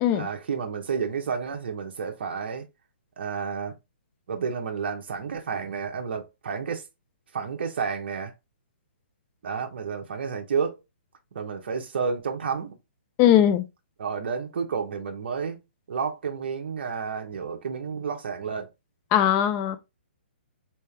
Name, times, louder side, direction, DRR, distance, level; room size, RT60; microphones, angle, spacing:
voice 1, 0.1-2.7 3.2-3.7 4.3-6.8 7.3-8.3 9.4-10.8 11.3-12.8 14.0-15.6 15.9-18.7, right 6 dB, 65° right, 0.8 m, -30 dB
voice 2, 13.2-13.7 19.1-19.8, left 10 dB, 25° left, 0.4 m, -19 dB
3.3 x 2.8 x 3.2 m
hypercardioid pair, 155°, 6 cm